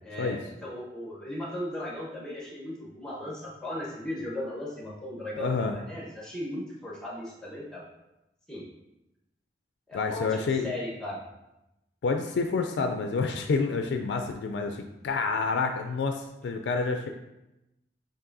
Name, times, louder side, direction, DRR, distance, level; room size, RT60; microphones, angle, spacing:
voice 1, 0.0-7.8 8.5-8.6 9.9-11.2 17.0-17.1, left 1 dB, 5° left, -5 dB, 0.9 m, -37 dB
voice 2, 5.4-5.8 9.9-10.7 12.0-17.1, left 4 dB, 80° left, 5 dB, 0.3 m, -28 dB
7.3 x 2.6 x 2.6 m, 0.93 s
head